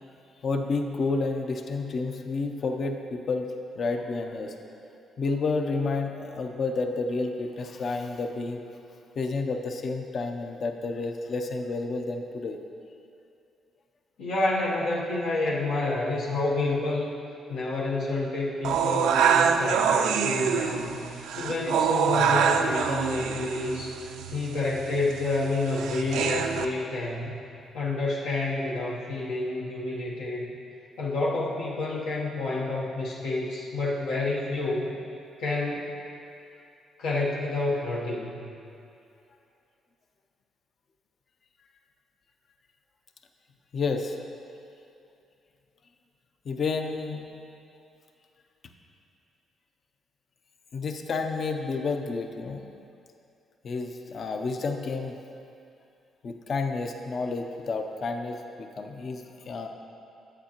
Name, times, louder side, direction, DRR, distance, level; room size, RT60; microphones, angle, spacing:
voice 1, 0.4-4.6 5.2-8.6 9.2-12.6 43.7-44.2 46.5-47.4 50.7-52.6 53.6-55.2 56.2-59.7, left 3 dB, 50° left, 4 dB, 0.5 m, -30 dB
voice 2, 14.2-17.1 17.5-21.1 21.3-24.0 24.3-27.4 27.7-30.5 31.0-35.0 35.4-35.9 37.0-38.5, left 2 dB, 85° left, -5 dB, 0.9 m, -29 dB
sound 1, 18.6-26.7, right 7 dB, 85° right, 0.3 m, -25 dB
8.9 x 8.4 x 2.9 m, 2.6 s
cardioid pair, 90°, 0 cm